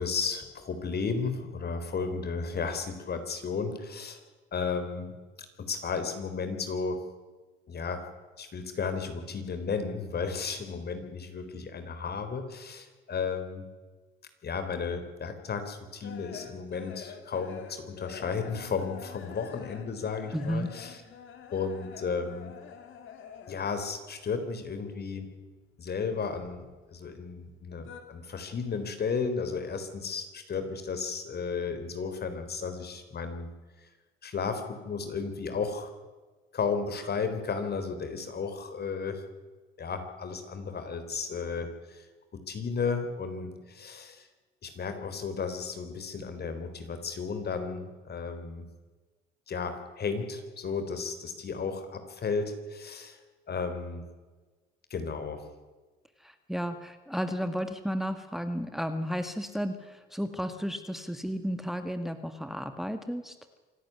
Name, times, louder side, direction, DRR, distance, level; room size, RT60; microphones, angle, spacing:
voice 1, 0.0-4.2 4.5-5.2 5.6-7.0 7.7-8.0 8.4-13.7 14.4-21.0 21.5-22.5 23.5-25.3 25.8-33.5 33.8-33.9 34.2-35.9 36.5-39.2 39.8-42.0 42.3-44.3 44.6-48.7 49.5-53.2 53.5-54.1 54.9-55.4, left 5 dB, 50° left, 9 dB, 4.1 m, -34 dB
sound 1, 15.2-23.9 24.2-25.4 25.7-27.1 27.4-28.0, left 7 dB, 70° left, 3.2 m, -47 dB
voice 2, 20.3-20.7 56.2-63.4, equal, ahead, 8 dB, 1.8 m, -33 dB
26.0 x 12.0 x 9.6 m, 1.3 s
supercardioid pair, 65°, 21 cm